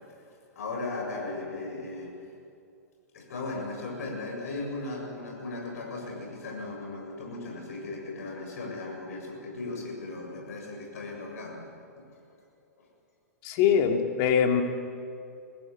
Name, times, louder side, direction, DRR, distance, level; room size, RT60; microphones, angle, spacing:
voice 1, 0.3-2.2 3.1-11.6 12.1-12.2, left 2 dB, 65° left, -1 dB, 7.5 m, -37 dB
voice 2, 13.4-14.6, left 7 dB, 45° left, 3 dB, 2.9 m, -23 dB
22.5 x 15.5 x 9.9 m, 2.5 s
hypercardioid pair, 110°, 9 cm